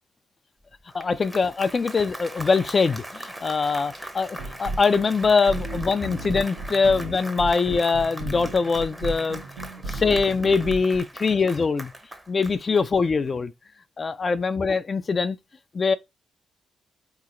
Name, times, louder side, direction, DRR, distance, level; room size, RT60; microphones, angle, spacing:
Applause, 0.7-13.3, right 1 dB, 10° right, 0.7 m, -40 dB
voice 1, 0.9-9.4 9.9-11.9 12.3-13.5 14.0-15.4 15.7-15.9, left 4 dB, 45° left, 0.3 m, -23 dB
sound 1, 4.3-11.0, right 2 dB, 75° right, 0.6 m, -35 dB
3.9 x 2.9 x 2.5 m
hypercardioid pair, 40°, 0 cm